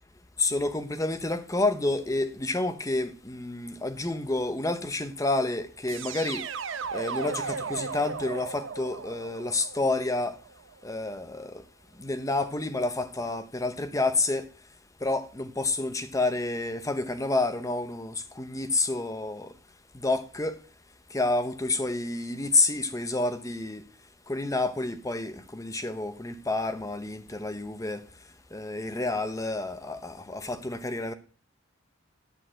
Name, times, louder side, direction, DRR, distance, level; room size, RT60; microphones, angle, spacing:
voice 1, 0.4-6.4 6.9-10.4 10.8-11.6 12.0-14.5 15.0-19.5 20.0-20.6 21.1-23.8 24.3-28.0 28.5-31.1, left 2 dB, 15° left, 0.8 m, -29 dB
sound 1, 5.9-10.8, right 5 dB, 60° right, 0.7 m, -36 dB
11.0 x 4.0 x 7.7 m
head